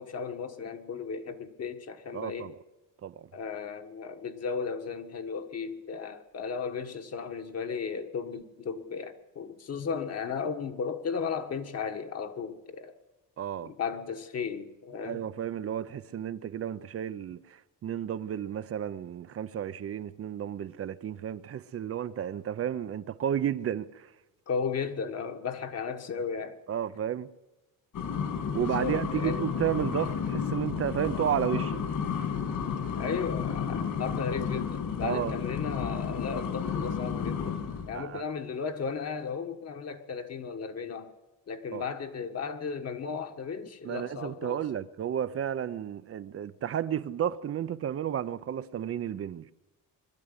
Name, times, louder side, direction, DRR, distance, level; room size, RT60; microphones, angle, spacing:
voice 1, 0.0-2.5 3.3-13.0 13.6-15.3 24.5-26.6 28.6-29.4 32.9-41.1 41.5-44.7, left 6 dB, 45° left, 1.5 m, -35 dB
voice 2, 2.1-2.5 3.0-3.3 13.4-13.7 15.1-24.1 26.7-27.3 28.5-31.8 35.0-35.3 37.9-38.2 41.7-41.8 43.8-49.5, right 10 dB, 40° right, 0.6 m, -32 dB
sound 1, 27.9-38.0, left 7 dB, 60° left, 2.9 m, -32 dB
22.0 x 12.5 x 9.7 m
cardioid pair, 150°, 36 cm